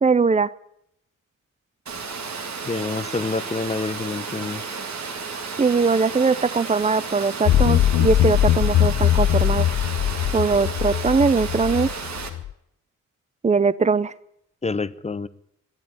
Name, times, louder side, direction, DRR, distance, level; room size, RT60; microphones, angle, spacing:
voice 1, 0.0-0.5 5.6-9.6 10.3-11.9 13.4-14.1, right 4 dB, 20° right, 18 dB, 0.5 m, -20 dB
Water, 1.9-12.3, right 5 dB, 60° right, 2.0 m, -33 dB
voice 2, 2.6-4.6 14.6-15.3, left 3 dB, 20° left, 16 dB, 0.6 m, -27 dB
sound 1, 7.5-12.5, left 12 dB, 85° left, 0.5 m, -21 dB
13.0 x 11.0 x 9.1 m, 0.77 s
wide cardioid pair, 145°, 31 cm